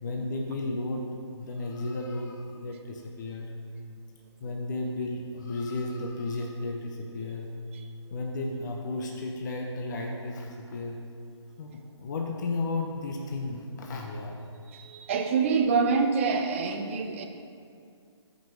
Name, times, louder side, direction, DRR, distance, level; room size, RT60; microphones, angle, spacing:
voice 1, 0.0-3.5 4.4-7.5 8.1-11.0 11.6-14.4, left 2 dB, 40° left, 1 dB, 0.8 m, -33 dB
voice 2, 14.7-17.2, right 5 dB, 25° right, 5 dB, 0.6 m, -26 dB
7.2 x 5.4 x 6.3 m, 2.4 s
hypercardioid pair, 155°, 15 cm